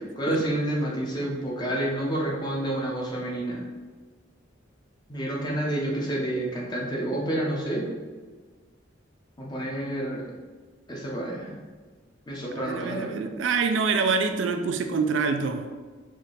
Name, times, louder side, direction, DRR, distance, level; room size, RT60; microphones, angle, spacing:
voice 1, 0.2-3.6 5.1-7.9 9.4-10.2 10.9-11.6 12.3-13.1, right 1 dB, 20° left, -3 dB, 0.7 m, -29 dB
voice 2, 12.5-15.7, right 5 dB, 75° right, 6 dB, 0.3 m, -26 dB
3.6 x 2.7 x 3.9 m, 1.4 s
head